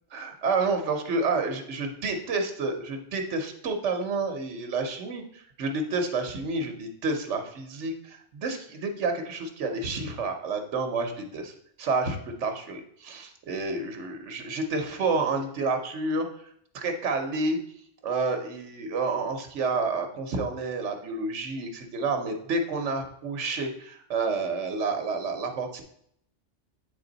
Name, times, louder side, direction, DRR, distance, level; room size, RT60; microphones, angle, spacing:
voice 1, 0.1-11.5 11.8-16.3 16.7-17.6 18.0-25.8, right 3 dB, 75° right, 5 dB, 1.2 m, -29 dB
8.1 x 3.5 x 3.9 m, 0.69 s
omnidirectional pair, 1.2 m